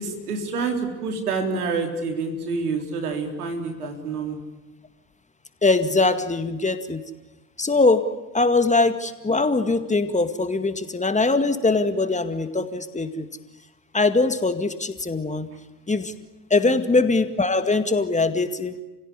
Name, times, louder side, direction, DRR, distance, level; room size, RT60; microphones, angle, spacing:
voice 1, 0.0-4.4 16.7-16.9, right 4 dB, 85° right, 4 dB, 3.8 m, -28 dB
voice 2, 5.6-7.0 7.6-8.0 8.3-13.3 13.9-15.5 15.9-16.1 16.5-18.8, left 3 dB, 15° left, 9 dB, 2.1 m, -22 dB
30.0 x 17.0 x 10.0 m, 1.1 s
hypercardioid pair, 60°, 44 cm